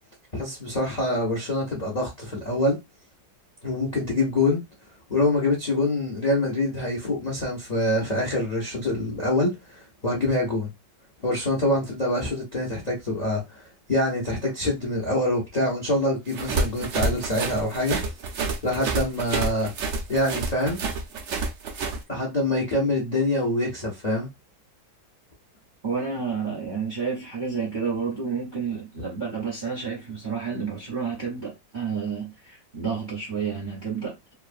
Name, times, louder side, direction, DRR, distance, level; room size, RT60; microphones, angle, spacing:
voice 1, 0.3-2.8 3.6-4.6 5.1-10.7 11.2-18.0 18.6-19.7 20.1-20.8 22.1-24.3, left 1 dB, 50° left, 0.4 m, -25 dB
sound 1, 16.3-22.0, right 3 dB, 90° right, 0.6 m, -28 dB
voice 2, 25.8-34.3, right 5 dB, 45° right, 0.6 m, -30 dB
3.0 x 2.3 x 2.5 m
omnidirectional pair, 2.0 m